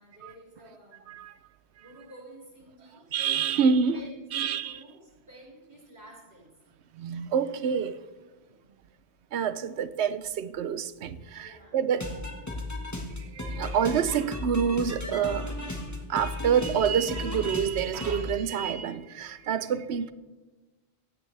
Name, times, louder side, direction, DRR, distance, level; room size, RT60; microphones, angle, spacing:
voice 1, 0.0-1.2 1.8-3.1 3.5-3.7 3.9-6.5 8.4-8.9 11.3-11.8, right 1 dB, 75° right, 5.1 m, -51 dB
voice 2, 3.1-4.0 4.3-4.8 7.0-8.0 9.3-12.1 13.2-15.5 16.1-20.1, right 7 dB, 90° right, 1.0 m, -27 dB
sound 1, 11.9-18.3, left 1 dB, 15° left, 1.5 m, -35 dB
16.5 x 15.0 x 3.3 m
omnidirectional pair, 1.1 m